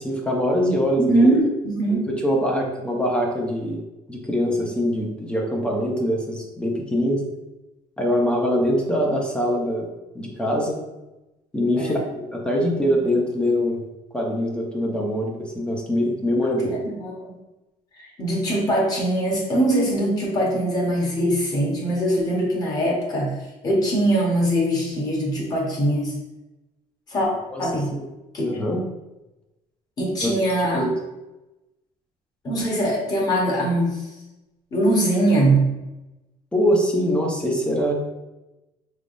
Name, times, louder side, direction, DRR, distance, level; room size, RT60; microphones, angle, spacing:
voice 1, 0.0-1.3 1.9-3.8 4.1-7.2 8.0-9.9 10.1-10.8 11.5-13.8 14.1-16.7 27.5-27.6 27.9-28.0 28.4-28.8 30.2-30.3 30.8-30.9 36.5-37.9, equal, 5° left, -1 dB, 0.6 m, -23 dB
voice 2, 1.0-1.4 1.6-2.1 11.8-12.0 16.6-17.3 17.9-23.3 23.6-26.1 27.1-27.3 27.6-27.9 28.3-28.5 30.0-30.8 32.4-34.0 34.7-35.7, right 1 dB, 25° left, -2 dB, 1.1 m, -22 dB
5.0 x 3.4 x 2.5 m, 1.0 s
cardioid pair, 180°, 14 cm